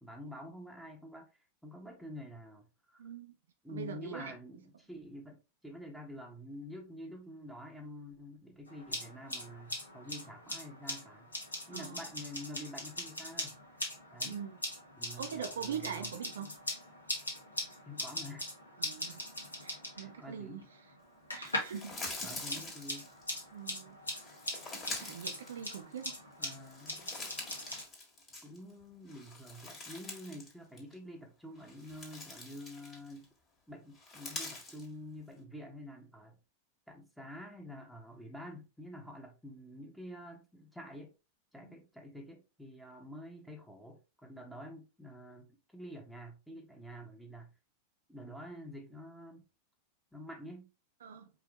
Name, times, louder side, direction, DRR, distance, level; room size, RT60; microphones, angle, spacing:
voice 1, 0.0-1.3 1.6-3.0 3.6-11.3 11.7-13.5 14.1-14.4 15.0-16.1 16.4-16.5 17.9-18.5 20.0-20.7 22.2-23.1 26.4-27.1 28.4-33.3 33.7-36.4 36.9-41.1 41.5-47.5 48.1-49.4 50.1-50.7, equal, ahead, 1.1 m, -48 dB
voice 2, 3.0-3.3 3.7-4.3 11.7-12.0 14.2-14.6 15.2-16.5 18.8-19.2 19.6-20.6 21.3-21.9 23.5-24.0 25.0-26.2 41.6-41.8 51.0-51.3, right 7 dB, 65° right, 0.6 m, -42 dB
sound 1, 8.7-21.8 22.1-27.8, left 1 dB, 80° left, 1.3 m, -41 dB
sound 2, 21.4-23.4 24.1-26.2 26.5-28.7 29.1-30.5 30.8-30.9 31.6-33.2 33.9-34.9, left 2 dB, 25° left, 1.7 m, -45 dB
4.7 x 2.8 x 3.1 m
figure-of-eight pair, 90°, 0 cm